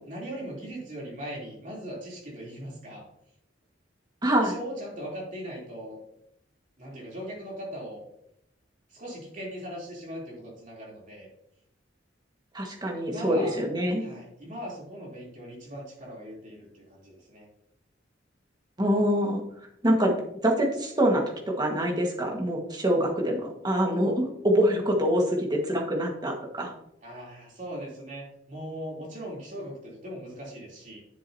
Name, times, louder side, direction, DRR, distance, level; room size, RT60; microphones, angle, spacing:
voice 1, 0.1-3.1 4.4-6.0 6.8-8.0 8.9-11.3 13.1-13.6 14.0-17.5 27.0-31.0, equal, 40° right, -3 dB, 3.3 m, -39 dB
voice 2, 4.2-4.5 12.5-14.0 18.8-19.4 19.8-20.1 20.4-26.7, equal, 20° right, 0 dB, 1.6 m, -25 dB
10.0 x 7.7 x 2.8 m, 0.79 s
head